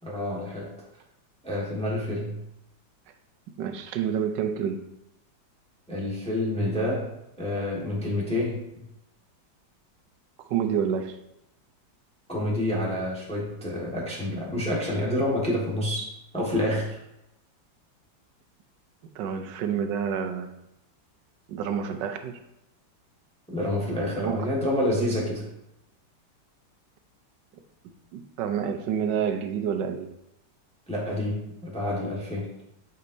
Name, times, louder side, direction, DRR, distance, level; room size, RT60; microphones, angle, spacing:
voice 1, 0.0-0.7 1.4-2.4 5.9-7.1 7.4-8.8 12.3-17.0 23.5-25.4 30.9-32.5, left 1 dB, 5° left, -5 dB, 1.3 m, -28 dB
voice 2, 3.6-4.9 10.5-11.2 19.1-20.5 21.5-22.4 24.2-24.5 28.1-30.1, right 8 dB, 70° right, 7 dB, 1.3 m, -28 dB
8.4 x 5.4 x 2.7 m, 0.85 s
omnidirectional pair, 2.1 m